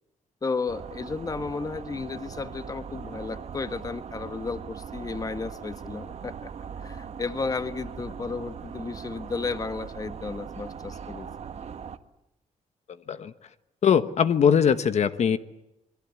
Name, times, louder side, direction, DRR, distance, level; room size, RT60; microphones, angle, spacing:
voice 1, 0.4-6.5 6.8-11.3, left 4 dB, 30° left, 11 dB, 1.4 m, -33 dB
sound 1, 0.7-12.0, right 7 dB, 55° right, 1.6 m, -40 dB
voice 2, 13.8-15.4, left 7 dB, 60° left, 11 dB, 1.1 m, -21 dB
27.5 x 23.0 x 8.5 m, 0.87 s
wide cardioid pair, 150°, 13 cm